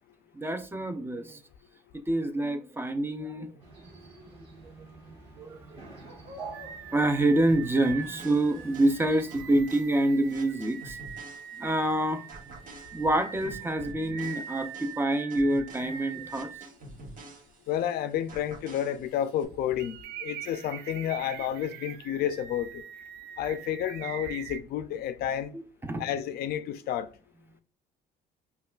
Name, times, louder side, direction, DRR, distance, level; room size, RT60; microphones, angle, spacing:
voice 1, 0.3-1.4 2.1-3.5 4.2-4.3 4.8-4.9 5.4-6.0 6.3-6.4 6.9-11.0 11.6-12.5 12.9-16.5 25.5-26.0, right 1 dB, 15° right, 0.4 m, -27 dB
sound 1, 3.6-9.6, right 3 dB, 35° right, 1.8 m, -47 dB
sound 2, 6.5-16.7 17.2-17.3 19.8-24.6, right 9 dB, 90° right, 0.4 m, -43 dB
sound 3, 7.4-11.9 12.3-17.9 18.3-19.4, right 2 dB, 55° right, 1.0 m, -48 dB
voice 2, 17.7-22.8 23.4-25.5 26.0-27.1, left 10 dB, 70° left, 0.4 m, -31 dB
5.3 x 2.3 x 2.3 m
cardioid pair, 110°, 17 cm